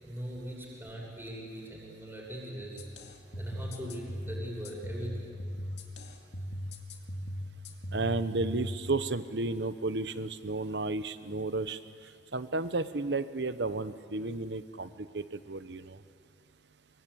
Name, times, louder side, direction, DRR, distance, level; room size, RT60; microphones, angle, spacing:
voice 1, 0.0-2.8 3.4-5.4, equal, 10° right, -3 dB, 6.3 m, -41 dB
sound 1, 2.8-8.8, equal, 70° left, 2.2 m, -39 dB
voice 2, 7.9-11.8 12.3-16.0, right 3 dB, 70° right, 12 dB, 1.0 m, -32 dB
24.5 x 23.5 x 8.7 m, 2.4 s
head